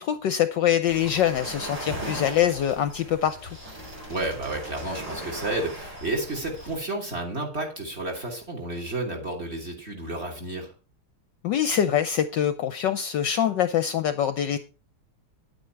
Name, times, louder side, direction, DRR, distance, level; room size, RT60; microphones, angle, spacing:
voice 1, 0.0-3.6 11.4-14.6, left 10 dB, 70° left, 1.2 m, -24 dB
sound 1, 0.9-6.8, right 1 dB, 55° right, 5.7 m, -38 dB
voice 2, 4.1-10.7, right 2 dB, 30° right, 3.3 m, -31 dB
10.0 x 9.0 x 4.6 m
omnidirectional pair, 2.3 m